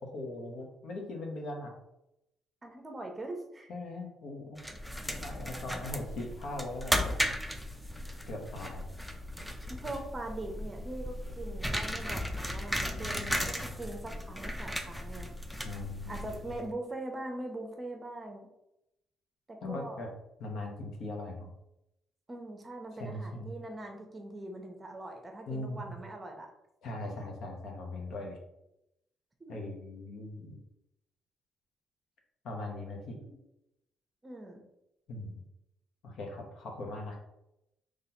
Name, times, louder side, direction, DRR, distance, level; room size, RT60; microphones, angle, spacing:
voice 1, 0.0-1.7 3.7-4.6 5.0-7.3 8.3-8.8 13.0-13.8 15.6-16.3 19.6-20.1 20.4-21.5 23.0-23.5 25.5-26.0 26.8-28.4 29.5-30.6 32.4-33.2 35.1-35.4 36.0-37.2, left 2 dB, 70° left, 1 dB, 1.0 m, -40 dB
voice 2, 2.6-3.7 9.7-15.3 16.1-18.5 19.5-20.0 22.3-26.5 29.4-29.6 33.2-33.3 34.2-34.6, right 2 dB, 25° right, 3 dB, 0.8 m, -42 dB
sound 1, 4.6-16.6, equal, ahead, 0.5 m, -36 dB
3.9 x 3.2 x 2.8 m, 0.86 s
cardioid pair, 90°, 0 cm